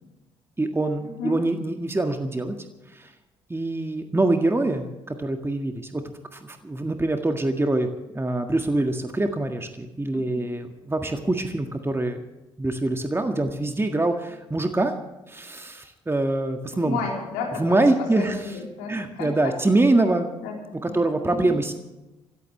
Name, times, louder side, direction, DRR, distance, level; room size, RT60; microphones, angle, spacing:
voice 1, 0.6-2.6 2.9-3.1 3.5-6.0 6.3-7.9 8.1-12.2 12.6-14.9 15.3-17.0 17.6-18.4 18.9-20.3 20.7-21.7, right 2 dB, 15° right, 5 dB, 1.8 m, -24 dB
voice 2, 16.7-17.8 18.2-19.5 20.4-20.6 20.9-21.0 21.2-21.6, left 4 dB, 75° left, -1 dB, 4.1 m, -32 dB
26.5 x 14.0 x 3.3 m, 1.0 s
figure-of-eight pair, 45°, 15 cm